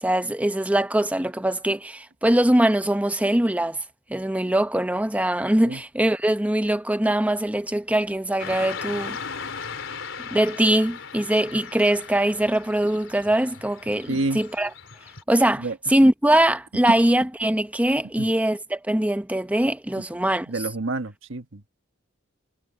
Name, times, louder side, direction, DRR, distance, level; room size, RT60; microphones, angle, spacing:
voice 1, 0.0-3.8 4.1-9.2 10.3-14.7 15.3-20.5, right 1 dB, 5° right, 0.7 m, -22 dB
Car passing by / Traffic noise roadway noise, 8.4-15.2, left 6 dB, 80° left, 3.8 m, -37 dB
voice 2, 14.1-14.4 15.6-15.7 18.2-18.3 20.5-21.7, right 2 dB, 75° right, 1.4 m, -28 dB
head